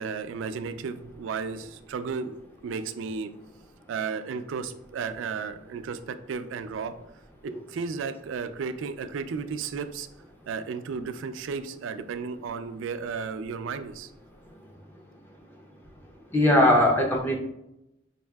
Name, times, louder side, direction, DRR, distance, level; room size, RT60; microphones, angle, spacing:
voice 1, 0.0-2.4 2.6-3.3 3.9-6.9 7.7-10.1 10.5-14.1, right 5 dB, 75° right, 11 dB, 0.3 m, -33 dB
voice 2, 16.3-17.4, left 1 dB, 10° left, 1 dB, 0.4 m, -19 dB
5.4 x 2.7 x 2.2 m, 0.87 s
head